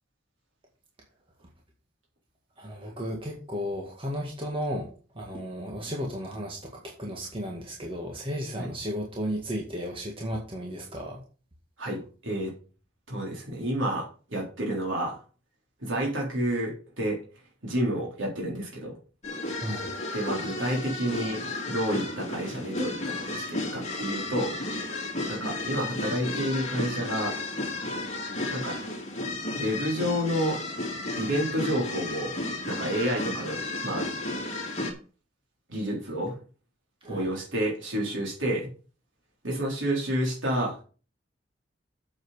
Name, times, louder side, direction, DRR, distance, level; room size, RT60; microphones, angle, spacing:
voice 1, 2.6-11.2 19.6-19.9 37.0-37.3, equal, 30° right, -1 dB, 1.9 m, -34 dB
voice 2, 11.8-12.5 13.1-15.2 15.8-17.2 17.6-19.0 20.1-24.6 25.3-27.4 28.5-28.8 29.5-30.6 31.2-32.3 32.7-34.1 35.7-36.4 37.0-38.7 39.4-40.8, equal, 85° right, -2 dB, 3.7 m, -30 dB
sound 1, 19.2-34.9, left 2 dB, 35° left, 2.7 m, -33 dB
8.4 x 7.3 x 5.0 m, 0.37 s
head